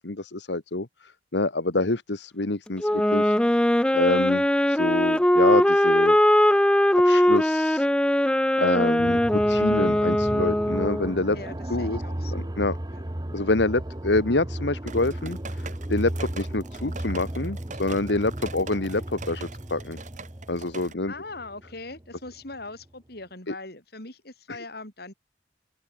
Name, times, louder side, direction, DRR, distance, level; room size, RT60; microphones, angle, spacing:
voice 1, 0.0-3.7 3.9-6.2 7.0-7.9 8.6-11.4 11.7-12.0 12.3-12.8 13.3-20.0 20.5-21.1 23.5-23.6 24.5-24.6, left 2 dB, 75° left, 1.6 m, -27 dB
Wind instrument woodwind instrument, 2.8-11.1, left 1 dB, 5° left, 0.4 m, -21 dB
sound 1, 9.0-22.6, right 1 dB, 20° right, 1.1 m, -35 dB
voice 2, 11.3-12.5 12.9-13.0 21.1-25.1, left 2 dB, 60° left, 7.8 m, -41 dB
sound 2, 14.9-20.9, right 4 dB, 45° right, 4.5 m, -43 dB
open air
head